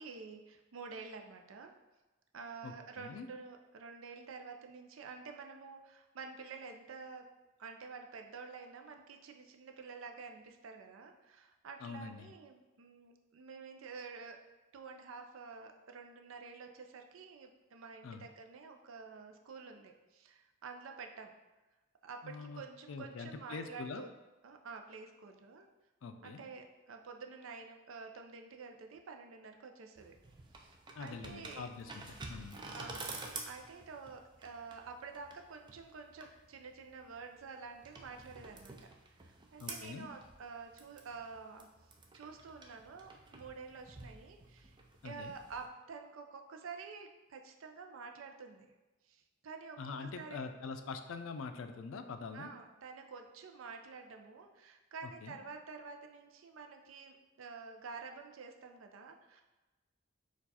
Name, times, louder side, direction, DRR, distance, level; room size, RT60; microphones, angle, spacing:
voice 1, 0.0-1.7 2.3-7.3 7.6-14.4 14.7-21.3 22.0-24.1 24.4-25.7 26.2-30.1 30.5-31.7 32.7-41.7 42.1-44.7 45.0-48.7 49.0-50.5 52.3-59.4, right 4 dB, 90° right, 4 dB, 0.5 m, -49 dB
voice 2, 2.6-3.3 11.8-12.3 18.0-18.3 22.2-22.6 22.9-24.0 26.0-26.4 31.0-32.6 39.6-40.1 45.0-45.3 49.8-52.5 55.0-55.4, left 4 dB, 80° left, 8 dB, 0.4 m, -44 dB
sound 1, 30.0-45.7, right 3 dB, 25° right, 0.4 m, -50 dB
4.5 x 2.4 x 4.1 m, 1.1 s
head